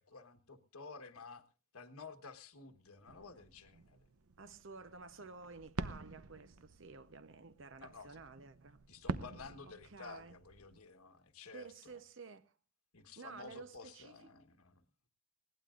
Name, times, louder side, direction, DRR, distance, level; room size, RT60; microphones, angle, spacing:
voice 1, 0.0-1.4 1.7-4.0 7.8-8.1 8.9-11.7 12.9-14.8, left 4 dB, 85° left, 1.4 m, -52 dB
sound 1, 3.0-10.8, right 3 dB, 90° right, 0.8 m, -47 dB
voice 2, 4.4-8.8 9.6-10.4 11.5-12.6 13.2-14.3, right 4 dB, 60° right, 0.9 m, -52 dB
20.5 x 17.5 x 2.5 m
head